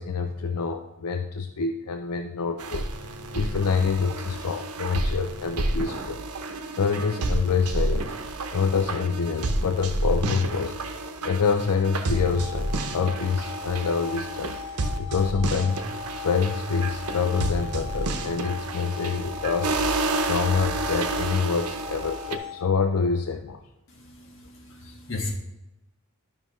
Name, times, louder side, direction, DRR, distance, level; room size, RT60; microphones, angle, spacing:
voice 1, 0.0-6.2 6.8-10.8 11.2-14.5 15.0-23.6, left 5 dB, 90° left, 6 dB, 0.5 m, -26 dB
sound 1, 2.6-22.4, right 2 dB, 90° right, 0.8 m, -30 dB
sound 2, 12.1-23.0, left 7 dB, 25° left, 0.8 m, -39 dB
voice 2, 23.9-25.4, left 2 dB, 55° left, 1 dB, 1.5 m, -35 dB
11.0 x 5.6 x 3.1 m, 0.96 s
head